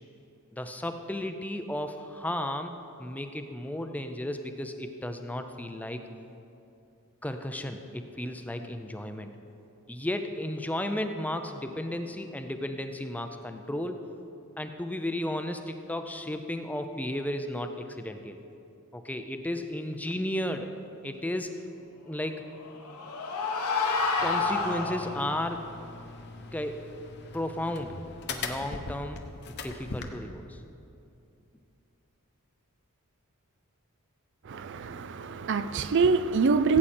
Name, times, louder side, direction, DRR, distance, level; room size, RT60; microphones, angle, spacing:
voice 1, 0.5-2.7 3.0-6.0 7.2-9.3 9.9-14.0 14.6-18.4 18.9-20.7 21.0-21.5 22.1-22.4 24.2-25.6 26.5-26.8 27.3-28.0 28.3-29.3 29.6-30.6, left 1 dB, 5° left, 7 dB, 0.5 m, -34 dB
sound 1, 22.5-25.4, left 3 dB, 85° left, 1.3 m, -29 dB
sound 2, 24.2-30.1, left 3 dB, 50° left, 0.9 m, -41 dB
voice 2, 34.5-36.8, right 4 dB, 55° right, 12 dB, 0.4 m, -25 dB
16.0 x 8.6 x 4.3 m, 2.7 s
head